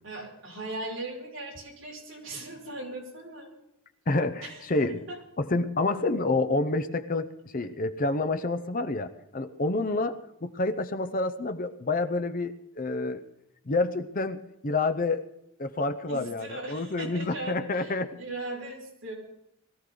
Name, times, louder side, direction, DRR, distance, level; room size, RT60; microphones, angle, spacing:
voice 1, 0.0-3.5 4.4-4.7 5.1-5.2 16.1-19.1, right 2 dB, 60° right, -3 dB, 5.5 m, -38 dB
voice 2, 4.1-5.1 5.4-13.2 13.7-15.2 15.6-18.1, left 2 dB, 40° left, 9 dB, 0.7 m, -28 dB
21.0 x 14.5 x 3.9 m, 0.82 s
head